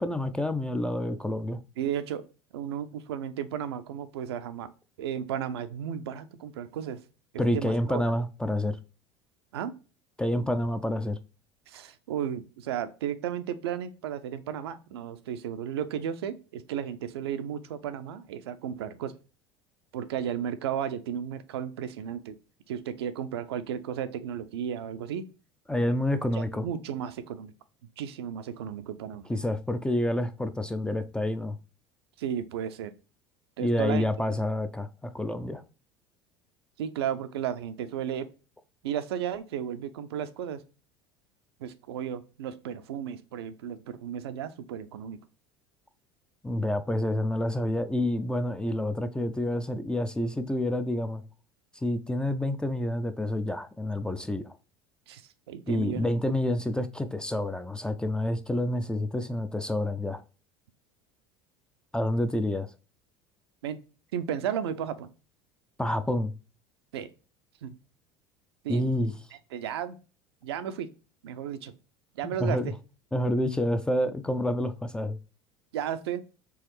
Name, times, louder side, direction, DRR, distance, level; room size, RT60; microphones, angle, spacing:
voice 1, 0.0-1.6 7.4-8.8 10.2-11.2 25.7-26.6 29.3-31.6 33.6-35.6 46.4-51.2 51.7-54.5 55.7-60.2 61.9-62.7 65.8-66.3 68.7-69.1 72.2-72.7 73.1-75.2, left 1 dB, 5° left, 0.4 m, -28 dB
voice 2, 1.8-2.2 2.5-4.7 5.0-7.0 7.5-8.0 9.5-9.7 11.7-19.2 19.9-22.4 22.7-25.2 26.3-27.5 28.0-29.3 32.2-32.9 33.6-34.0 36.8-38.3 38.8-40.6 41.6-45.2 55.1-56.1 63.6-63.8 64.1-65.1 66.9-67.1 67.6-67.7 68.6-69.0 69.5-70.0 70.4-70.9 71.2-71.7 72.2-72.7 75.7-76.2, right 9 dB, 65° right, 0.5 m, -34 dB
4.7 x 3.1 x 3.0 m
figure-of-eight pair, 70°, 14 cm